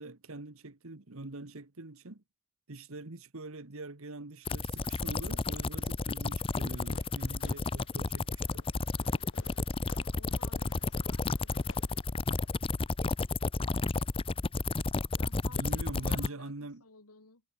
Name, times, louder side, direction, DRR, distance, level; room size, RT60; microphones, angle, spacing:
voice 1, 0.0-2.2 2.7-8.6 15.4-16.8, right 2 dB, 65° right, 1.6 m, -44 dB
sound 1, 4.5-16.3, left 3 dB, 25° left, 0.6 m, -32 dB
Fireworks, 6.5-12.5, left 4 dB, 55° left, 3.0 m, -56 dB
voice 2, 9.9-11.8 15.2-17.4, left 3 dB, 85° left, 2.7 m, -57 dB
head